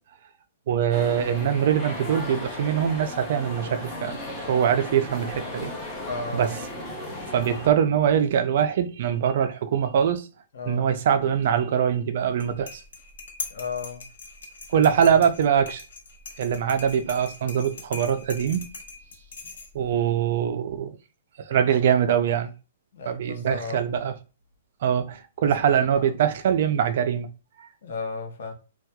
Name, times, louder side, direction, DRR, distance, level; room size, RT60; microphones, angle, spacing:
voice 1, 0.7-4.2 4.5-5.7 6.3-6.5 7.3-10.3 10.7-12.8 14.7-15.8 16.4-18.7 19.7-21.0 21.4-22.5 23.1-24.1 24.8-27.3 27.6-27.7, right 8 dB, 45° right, 0.3 m, -23 dB
sound 1, 0.9-7.7, left 1 dB, 10° left, 0.6 m, -36 dB
voice 2, 6.1-6.5 10.5-10.9 13.5-14.1 14.7-14.9 22.9-23.9 25.4-26.1 27.8-28.5, left 4 dB, 55° left, 0.8 m, -35 dB
sound 2, 12.3-20.0, left 3 dB, 85° left, 0.9 m, -41 dB
4.1 x 2.2 x 2.2 m
hypercardioid pair, 175°, 0 cm